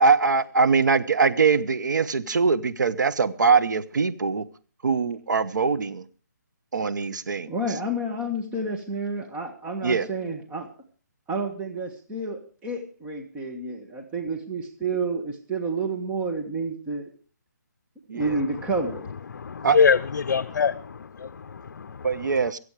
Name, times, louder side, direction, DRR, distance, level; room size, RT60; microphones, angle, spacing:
voice 1, 0.0-4.4 4.8-6.0 6.7-7.5 9.8-10.1 18.1-18.3 19.6-19.8 22.0-22.6, right 5 dB, 75° right, 12 dB, 1.1 m, -22 dB
voice 2, 7.5-10.7 11.3-17.1 18.1-19.1, right 2 dB, 10° right, 2 dB, 1.5 m, -30 dB
voice 3, 19.3-22.5, left 6 dB, 65° left, 13 dB, 0.6 m, -25 dB
23.0 x 8.2 x 4.9 m, 0.39 s
hypercardioid pair, 155°, 10 cm